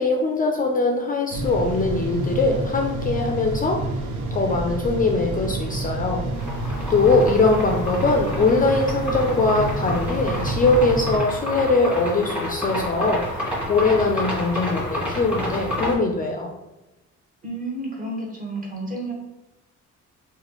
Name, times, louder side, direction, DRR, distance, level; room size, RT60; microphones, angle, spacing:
voice 1, 0.0-3.8 4.3-6.2 6.5-13.2 13.7-16.5, left 3 dB, 30° left, 1 dB, 0.4 m, -21 dB
sound 1, 1.3-11.2, right 2 dB, 85° right, 0.5 m, -29 dB
sound 2, 6.3-15.9, left 1 dB, 5° right, 1.3 m, -30 dB
voice 2, 7.2-7.5 17.4-19.1, right 2 dB, 25° right, -2 dB, 1.0 m, -31 dB
3.0 x 2.2 x 2.9 m, 0.99 s
cardioid pair, 90°, 30 cm